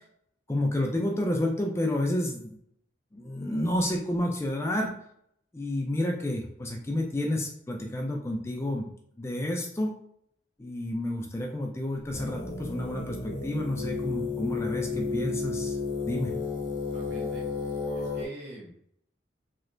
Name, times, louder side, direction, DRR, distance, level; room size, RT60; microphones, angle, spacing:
voice 1, 0.5-2.6 3.1-4.9 5.5-8.9 9.2-9.9 10.6-15.8 16.1-16.3, left 1 dB, 15° left, 1 dB, 0.3 m, -30 dB
sound 1, 12.1-18.3, left 4 dB, 60° left, 0.8 m, -32 dB
voice 2, 16.9-17.4 17.9-18.8, right 1 dB, 65° right, -3 dB, 1.1 m, -44 dB
3.2 x 2.8 x 2.5 m, 0.69 s
head